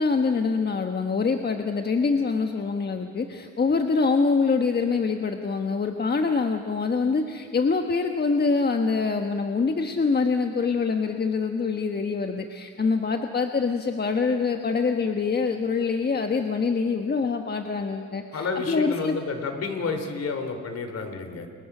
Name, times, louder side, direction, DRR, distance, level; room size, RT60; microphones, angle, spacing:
voice 1, 0.0-19.2, left 4 dB, 35° left, 5 dB, 1.3 m, -25 dB
voice 2, 18.3-21.5, left 4 dB, 55° left, 6 dB, 3.6 m, -30 dB
29.5 x 21.5 x 6.2 m, 2.2 s
cardioid pair, 90°, 30 cm